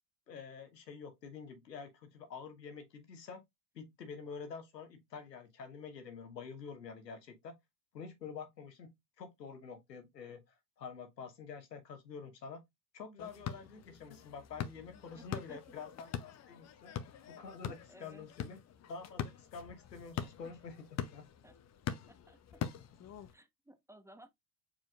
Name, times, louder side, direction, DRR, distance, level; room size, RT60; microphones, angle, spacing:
voice 1, 0.3-3.4 3.7-7.5 7.9-10.4 10.8-12.6 12.9-16.9 17.3-18.6 18.9-21.3, left 5 dB, 90° left, 1.2 m, -48 dB
sound 1, 13.2-23.3, left 9 dB, 35° left, 0.8 m, -44 dB
voice 2, 15.1-15.6 17.6-18.3 20.2-20.3 21.4-21.5 21.9-22.6 23.3-24.3, right 1 dB, 5° right, 1.0 m, -57 dB
4.8 x 4.4 x 2.4 m
hypercardioid pair, 70°, 48 cm